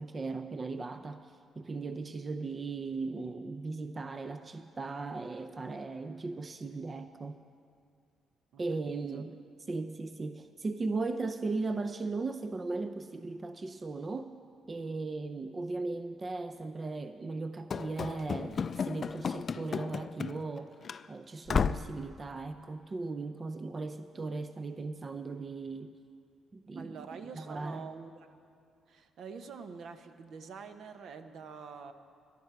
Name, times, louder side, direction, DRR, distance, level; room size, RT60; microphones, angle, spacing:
voice 1, 0.0-7.4 8.6-9.3 9.7-14.3 14.7-20.7 21.1-25.9 26.5-27.1 27.3-27.9, right 3 dB, 30° right, 9 dB, 0.5 m, -37 dB
voice 2, 8.9-9.2 26.8-28.3 28.9-31.9, right 5 dB, 70° right, 8 dB, 0.9 m, -46 dB
Run / Slam, 17.7-20.6 20.8-21.0 21.5-22.0, left 6 dB, 45° left, 0.3 m, -33 dB
17.5 x 12.0 x 4.6 m, 2.4 s
cardioid pair, 90°, 0 cm